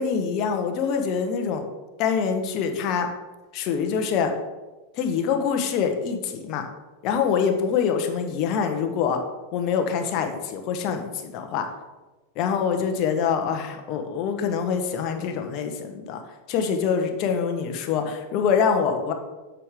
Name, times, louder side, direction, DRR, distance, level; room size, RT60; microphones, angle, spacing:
voice 1, 0.0-1.6 2.0-3.1 3.5-4.3 4.9-6.6 7.0-9.2 9.5-11.7 12.3-16.2 16.5-19.1, left 6 dB, 50° left, 5 dB, 1.2 m, -25 dB
8.2 x 6.5 x 3.7 m, 1.2 s
hypercardioid pair, 105°, 0 cm